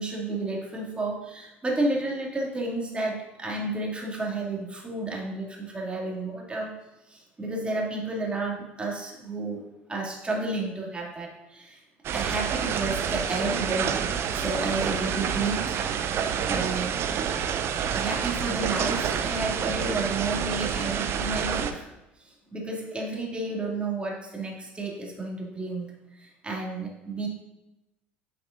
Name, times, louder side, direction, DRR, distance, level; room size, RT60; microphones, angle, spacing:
voice 1, 0.0-6.7 7.1-9.6 9.9-11.8 12.1-13.9 14.3-15.8 16.4-17.0 17.9-21.9 22.2-27.3, right 2 dB, 20° right, -2 dB, 2.4 m, -31 dB
sound 1, 12.0-21.7, right 8 dB, 45° right, 0.6 m, -28 dB
9.6 x 6.0 x 2.6 m, 0.96 s
figure-of-eight pair, 65°, 6 cm